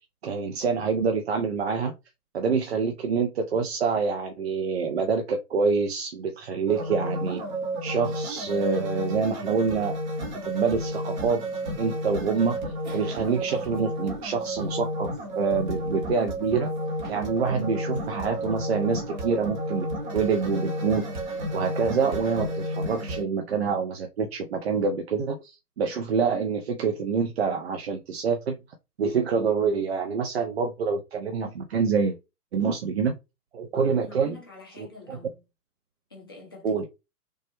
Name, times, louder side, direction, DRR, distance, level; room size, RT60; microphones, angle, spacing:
voice 1, 0.2-1.9 2.3-7.4 7.8-10.0 10.4-11.4 11.8-12.6 12.9-15.1 15.4-16.7 17.1-19.9 20.1-28.6 29.0-32.2 32.5-33.1 33.5-34.4 34.8-35.2 36.6-36.9, right 5 dB, 45° right, 0.4 m, -26 dB
sound 1, 6.7-23.2, right 1 dB, 30° right, 0.8 m, -31 dB
voice 2, 33.7-35.4 36.1-36.9, left 3 dB, 15° left, 0.4 m, -46 dB
3.3 x 2.0 x 2.9 m
figure-of-eight pair, 125°, 47 cm